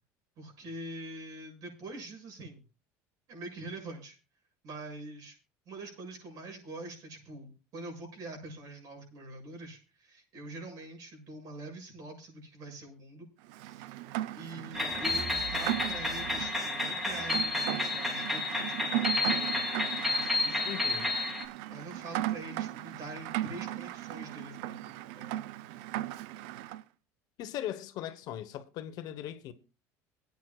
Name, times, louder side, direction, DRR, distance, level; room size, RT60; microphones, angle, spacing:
voice 1, 0.4-2.6 3.3-4.2 4.6-5.4 5.7-13.3 13.6-14.0 14.3-20.7 21.7-25.4, right 2 dB, 55° right, 7.3 m, -44 dB
Rain, 13.5-26.8, right 14 dB, 75° right, 0.6 m, -37 dB
sound 1, 14.7-21.4, left 2 dB, 5° right, 3.0 m, -31 dB
voice 2, 20.6-21.2 27.4-29.5, left 11 dB, 60° left, 1.1 m, -39 dB
25.0 x 9.4 x 2.4 m
supercardioid pair, 115°, 8 cm